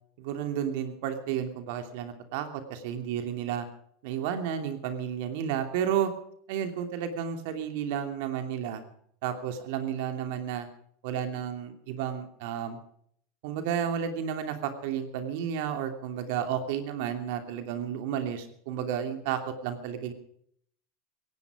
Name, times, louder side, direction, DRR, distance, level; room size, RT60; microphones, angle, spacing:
voice 1, 0.2-3.7 4.0-6.1 6.5-8.8 9.2-10.7 11.0-12.8 13.4-20.1, right 9 dB, 70° right, 8 dB, 2.8 m, -32 dB
17.5 x 16.0 x 5.1 m, 0.67 s
supercardioid pair, 115°, 0 cm